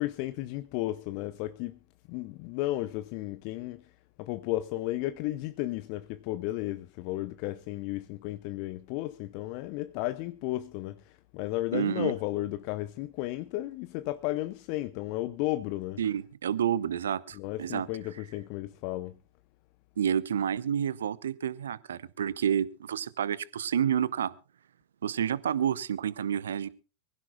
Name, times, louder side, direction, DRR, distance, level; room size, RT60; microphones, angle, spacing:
voice 1, 0.0-1.8 2.1-3.9 4.2-16.0 17.3-19.2, left 16 dB, 45° left, 0.7 m, -34 dB
voice 2, 11.7-12.1 16.0-17.9 20.0-24.3 25.0-26.7, right 9 dB, 65° right, 0.7 m, -29 dB
24.0 x 16.0 x 2.3 m
figure-of-eight pair, 90°, 0 cm